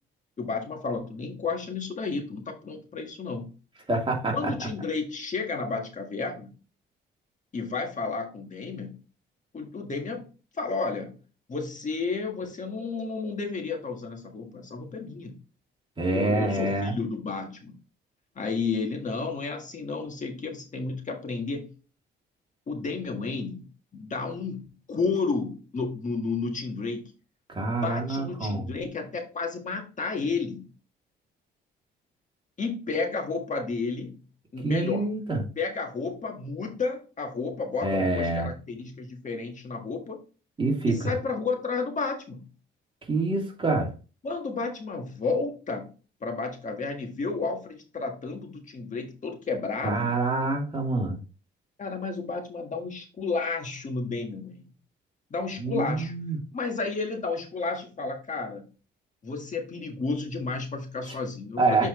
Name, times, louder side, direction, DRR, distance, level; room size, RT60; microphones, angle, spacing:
voice 1, 0.4-3.5 4.3-6.5 7.5-9.0 9.5-10.2 10.6-11.2 11.5-15.4 16.1-17.7 18.3-21.7 22.7-27.1 27.6-30.7 32.6-34.2 34.5-35.1 35.6-40.2 40.9-42.5 44.2-45.9 46.2-50.1 51.8-54.7 55.3-58.6 59.2-61.9, left 4 dB, 40° left, 1.6 m, -32 dB
voice 2, 3.9-4.5 16.0-16.9 27.5-28.7 34.6-35.4 37.8-38.5 40.6-41.1 43.1-43.9 49.8-51.2 55.6-56.4 61.6-61.9, right 2 dB, 25° right, 2.7 m, -26 dB
7.4 x 4.4 x 3.1 m
cardioid pair, 90°, 20 cm